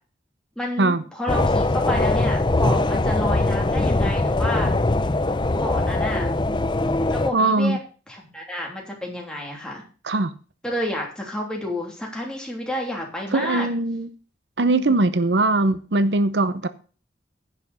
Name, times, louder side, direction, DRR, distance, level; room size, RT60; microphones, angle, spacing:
voice 1, 0.6-4.7 5.6-6.3 7.1-7.8 8.1-9.8 10.6-13.7, left 1 dB, 5° left, 3.1 m, -30 dB
sound 1, 1.3-7.3, left 2 dB, 25° left, 0.5 m, -21 dB
voice 2, 7.3-7.8 10.0-10.3 13.3-14.1 14.6-16.7, right 2 dB, 85° right, 0.8 m, -20 dB
10.5 x 5.9 x 7.1 m
head